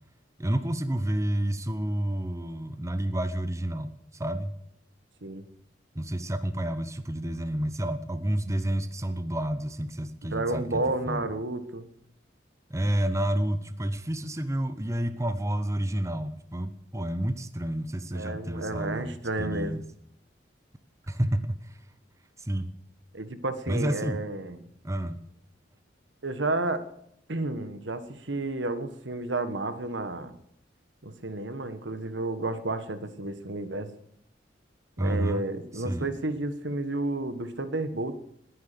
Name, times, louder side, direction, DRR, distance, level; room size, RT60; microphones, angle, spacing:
voice 1, 0.4-4.5 5.9-11.3 12.7-19.1 19.4-19.8 21.1-21.8 22.4-22.7 23.7-24.2 24.8-25.2 35.0-35.4 35.7-36.1, right 1 dB, 15° right, 11 dB, 0.8 m, -30 dB
voice 2, 10.2-11.9 18.1-19.8 23.1-24.6 26.2-26.9 27.3-30.4 31.0-33.9 35.0-38.2, right 2 dB, 75° right, 11 dB, 1.5 m, -31 dB
20.5 x 9.7 x 6.8 m, 0.73 s
head